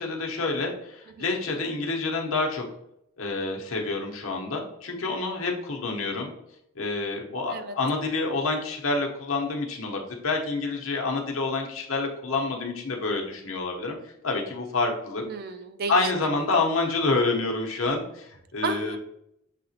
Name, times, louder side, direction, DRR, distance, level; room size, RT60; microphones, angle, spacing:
voice 1, 0.0-2.6 3.2-6.3 6.7-14.0 14.2-15.2 15.9-19.0, left 3 dB, 75° left, 2 dB, 0.9 m, -28 dB
voice 2, 15.3-15.9 18.6-19.0, right 5 dB, 45° right, 9 dB, 0.4 m, -32 dB
6.6 x 2.9 x 2.8 m, 0.77 s
head